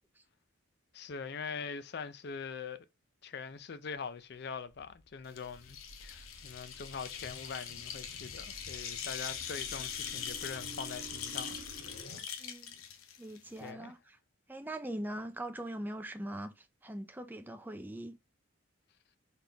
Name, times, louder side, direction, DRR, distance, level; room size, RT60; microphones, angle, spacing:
voice 1, 0.9-2.8 3.2-11.6 13.6-13.9, left 5 dB, 50° left, 0.4 m, -43 dB
sound 1, 4.8-12.3, right 1 dB, 70° left, 1.0 m, -52 dB
sound 2, 5.3-13.7, left 8 dB, 85° left, 0.7 m, -42 dB
voice 2, 12.4-12.7 13.2-14.2 14.5-18.2, right 1 dB, 10° right, 0.4 m, -41 dB
4.0 x 3.5 x 2.8 m
head